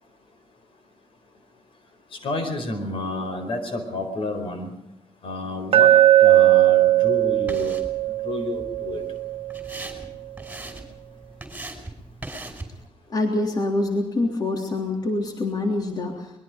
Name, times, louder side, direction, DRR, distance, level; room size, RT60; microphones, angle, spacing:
voice 1, 2.2-4.7 5.2-5.9 6.2-7.7 8.2-9.0, left 2 dB, 70° left, 7 dB, 4.6 m, -30 dB
Glass, 5.7-9.8, right 14 dB, 85° right, 0.9 m, -18 dB
sound 1, 6.8-12.9, right 2 dB, 15° right, 5.6 m, -40 dB
voice 2, 13.1-16.3, left 2 dB, 45° left, 2 dB, 3.5 m, -25 dB
24.0 x 22.0 x 5.2 m, 0.82 s
cardioid pair, 105°, 10 cm